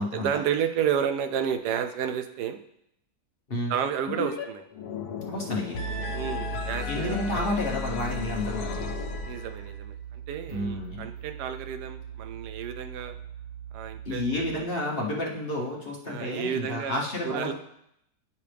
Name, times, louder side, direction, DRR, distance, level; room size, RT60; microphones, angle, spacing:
voice 1, 0.1-2.6 3.7-4.6 6.1-7.5 9.3-13.1 13.7-14.8 16.1-17.5, right 8 dB, 85° right, 8 dB, 1.2 m, -31 dB
sound 1, 4.1-4.4 4.7-9.7, left 3 dB, 75° left, 1.4 m, -33 dB
voice 2, 5.3-5.8 6.9-8.9 10.5-11.1 14.0-17.5, left 1 dB, 40° left, -2 dB, 1.2 m, -31 dB
sound 2, 8.0-14.6, right 9 dB, 60° right, 2.0 m, -42 dB
9.2 x 5.7 x 3.4 m, 0.76 s
omnidirectional pair, 1.7 m